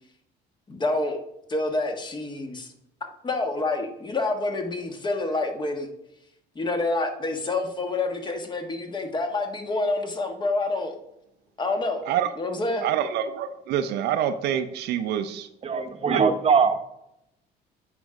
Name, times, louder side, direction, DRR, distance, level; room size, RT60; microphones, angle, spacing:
voice 1, 0.7-1.2 1.5-2.7 3.2-5.9 6.5-10.9 11.6-12.0 12.4-12.8, left 2 dB, 25° left, 1.3 m, -27 dB
voice 2, 12.8-15.5 16.1-16.2 16.6-16.7, right 10 dB, 80° right, 0.6 m, -26 dB
voice 3, 15.6-16.7, right 5 dB, 35° right, 0.9 m, -21 dB
8.1 x 5.2 x 4.8 m
cardioid pair, 110°, 17 cm